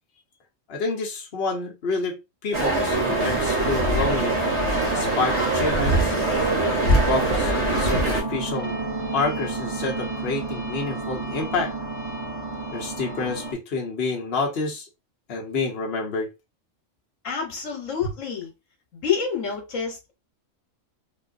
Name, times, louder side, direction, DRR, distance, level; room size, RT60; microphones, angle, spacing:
voice 1, 0.7-2.2 2.4-4.4 4.9-6.1 6.8-8.8 9.1-11.7 12.7-14.9 15.3-16.3 18.0-18.1, left 3 dB, 55° left, 1.1 m, -28 dB
sound 1, 2.5-8.2, right 2 dB, 60° right, 1.3 m, -23 dB
sound 2, 2.9-13.5, right 2 dB, 30° right, 1.0 m, -31 dB
voice 2, 17.2-18.5 18.9-20.1, left 7 dB, 75° left, 1.4 m, -28 dB
3.7 x 2.5 x 2.5 m
omnidirectional pair, 1.3 m